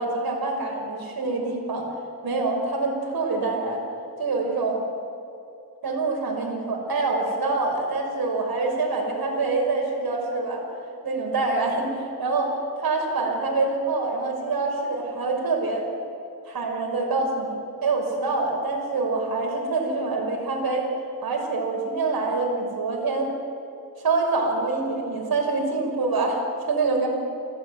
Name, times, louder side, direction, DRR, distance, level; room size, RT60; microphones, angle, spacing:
voice 1, 0.0-1.9 2.2-3.8 4.2-4.8 5.8-10.6 11.0-15.9 16.4-20.9 21.2-23.3 24.0-26.4 26.7-27.1, right 3 dB, 85° right, 0 dB, 6.0 m, -25 dB
24.5 x 18.0 x 9.8 m, 2.7 s
wide cardioid pair, 85°, 36 cm